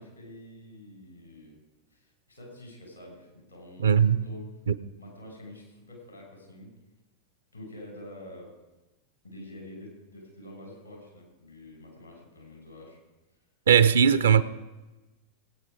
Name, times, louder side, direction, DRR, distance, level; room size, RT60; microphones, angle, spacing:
voice 1, 0.0-1.6 1.9-4.5 5.0-6.7 7.5-8.5 9.2-13.0, left 1 dB, 90° left, 5.3 m, -47 dB
voice 2, 3.8-4.2 4.7-4.8 13.7-14.4, right 7 dB, 65° right, 0.6 m, -19 dB
19.0 x 9.2 x 5.0 m
figure-of-eight pair, 90°, 0 cm